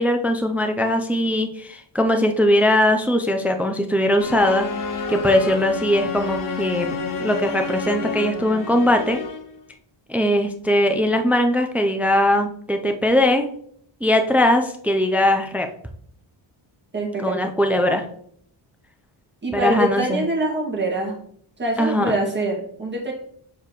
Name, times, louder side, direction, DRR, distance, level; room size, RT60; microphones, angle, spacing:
voice 1, 0.0-4.7 5.1-9.2 10.1-13.5 14.0-15.7 17.2-18.0 19.5-20.2 21.8-22.2, left 1 dB, 5° right, 5 dB, 0.4 m, -20 dB
sound 1, 4.2-9.6, left 4 dB, 40° left, 0.8 m, -29 dB
voice 2, 16.9-17.4 17.8-18.0 19.4-21.1 21.6-23.1, right 1 dB, 20° right, -2 dB, 2.0 m, -24 dB
6.9 x 4.7 x 3.0 m, 0.64 s
cardioid pair, 110°, 49 cm